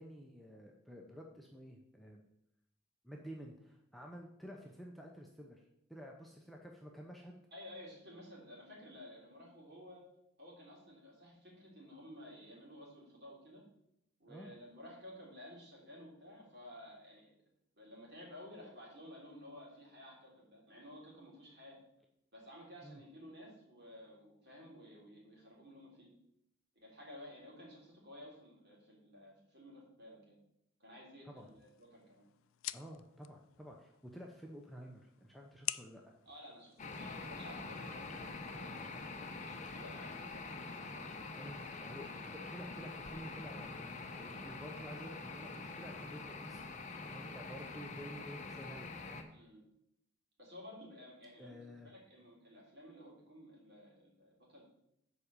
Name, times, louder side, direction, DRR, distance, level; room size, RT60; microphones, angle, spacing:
voice 1, 0.0-2.2 3.0-5.6 5.9-7.4 14.3-14.5 22.8-23.0 31.2-31.5 32.7-36.0 40.8-41.0 41.4-46.7 47.0-49.3 51.4-51.9, equal, ahead, -1 dB, 0.6 m, -51 dB
voice 2, 7.5-10.1 10.4-13.6 14.2-17.3 17.7-21.8 22.3-26.1 26.7-30.4 30.8-32.3 36.2-38.9 39.4-41.6 49.3-49.6 50.4-54.7, left 1 dB, 50° right, -4 dB, 3.3 m, -54 dB
sound 1, 31.4-37.4, left 16 dB, 70° left, 0.3 m, -48 dB
sound 2, 36.8-49.2, left 3 dB, 35° left, 0.8 m, -45 dB
7.5 x 4.9 x 6.7 m, 0.79 s
head